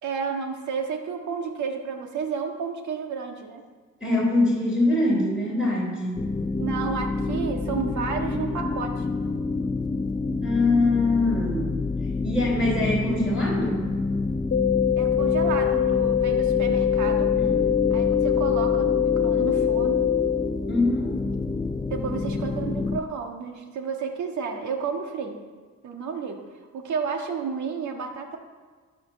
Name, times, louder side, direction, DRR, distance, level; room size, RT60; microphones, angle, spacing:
voice 1, 0.0-3.6 6.6-9.1 14.9-17.3 17.9-20.0 21.9-25.4 25.8-26.4 26.7-28.4, right 5 dB, 70° right, 3 dB, 1.7 m, -31 dB
voice 2, 4.0-6.3 10.4-11.7 12.2-13.9 17.3-17.6 20.7-21.1, left 2 dB, 5° right, -5 dB, 3.5 m, -23 dB
sound 1, 6.2-23.0, left 3 dB, 15° left, 0.4 m, -28 dB
sound 2, 14.5-20.5, left 10 dB, 50° left, 1.0 m, -23 dB
12.5 x 5.7 x 6.9 m, 1.5 s
cardioid pair, 90°, 30 cm